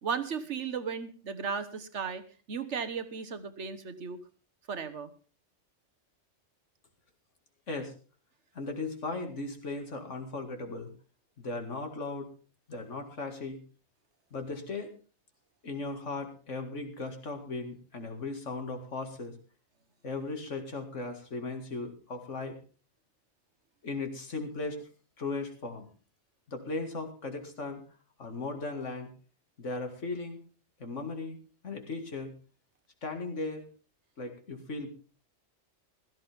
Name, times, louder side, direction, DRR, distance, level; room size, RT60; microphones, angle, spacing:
voice 1, 0.0-4.2 4.7-5.1, right 6 dB, 75° right, 11 dB, 1.5 m, -35 dB
voice 2, 8.5-10.9 11.4-12.3 12.7-13.6 14.3-14.9 15.6-19.4 20.0-22.6 23.8-24.9 25.2-25.9 26.5-27.8 28.2-29.1 29.6-30.4 30.8-32.3 33.0-33.7 34.2-34.9, left 3 dB, 85° left, 5 dB, 2.4 m, -37 dB
16.0 x 13.5 x 3.5 m, 0.36 s
omnidirectional pair, 1.2 m